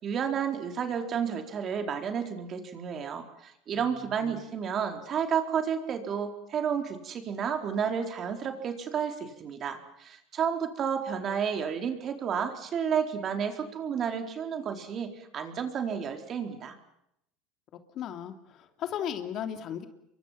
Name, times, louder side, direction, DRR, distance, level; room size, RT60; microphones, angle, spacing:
voice 1, 0.0-16.8, right 7 dB, 40° right, 5 dB, 4.3 m, -31 dB
voice 2, 17.9-19.9, left 9 dB, 50° left, 7 dB, 2.9 m, -36 dB
29.5 x 23.5 x 5.9 m, 0.76 s
supercardioid pair, 115°, 0 cm